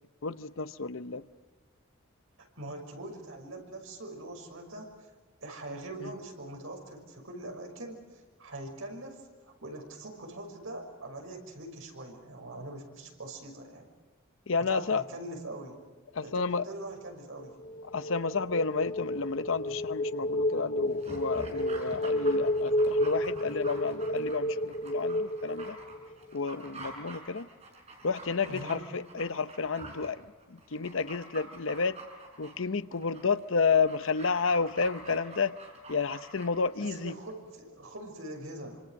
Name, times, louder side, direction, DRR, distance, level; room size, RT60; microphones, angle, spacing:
voice 1, 0.2-1.2 6.0-6.1 14.5-15.0 16.1-16.6 17.9-25.8 26.3-27.5 28.0-32.0 32.4-35.6 35.9-37.1, left 4 dB, 65° left, 0.8 m, -31 dB
voice 2, 2.6-5.1 5.4-13.9 14.6-15.8 16.2-17.6 28.4-28.9 36.8-38.8, right 1 dB, 75° right, 6.0 m, -43 dB
sound 1, 17.4-26.3, left 1 dB, 45° left, 1.8 m, -31 dB
Dog, 20.9-37.2 37.5-37.6, right 2 dB, 30° right, 5.0 m, -47 dB
26.5 x 26.0 x 6.5 m
head